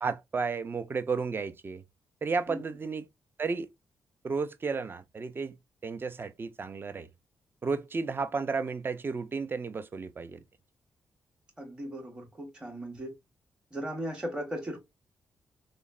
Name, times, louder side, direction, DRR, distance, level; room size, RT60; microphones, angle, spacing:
voice 1, 0.0-1.8 2.2-3.1 3.4-3.7 4.2-5.6 5.8-7.1 7.6-10.4, right 4 dB, 35° right, 0.4 m, -33 dB
voice 2, 11.6-13.1 13.7-14.8, equal, 10° right, 0.7 m, -37 dB
3.0 x 2.0 x 2.3 m
cardioid pair, 90°, 7 cm